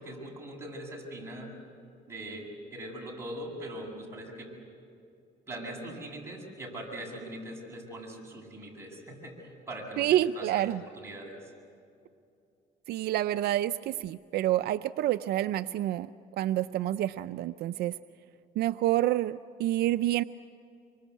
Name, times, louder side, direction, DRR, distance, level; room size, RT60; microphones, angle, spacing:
voice 1, 0.0-1.6 2.1-2.4 2.7-4.5 5.5-11.5, right 1 dB, 15° right, -2 dB, 8.0 m, -41 dB
voice 2, 10.0-10.8 12.9-16.1 16.4-17.9 18.6-20.2, right 13 dB, 70° right, 11 dB, 0.5 m, -28 dB
25.5 x 24.0 x 8.4 m, 2.6 s
cardioid pair, 110°, 17 cm